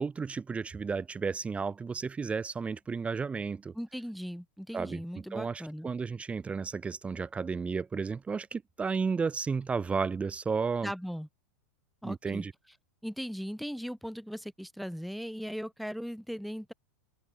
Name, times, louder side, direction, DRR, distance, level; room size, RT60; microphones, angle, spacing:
voice 1, 0.0-3.7 4.7-10.9 12.0-12.5, right 5 dB, 15° right, 2.0 m, -33 dB
voice 2, 3.7-5.9 10.8-11.3 12.0-12.5 13.0-16.7, equal, ahead, 2.1 m, -38 dB
open air
figure-of-eight pair, 95°, 8 cm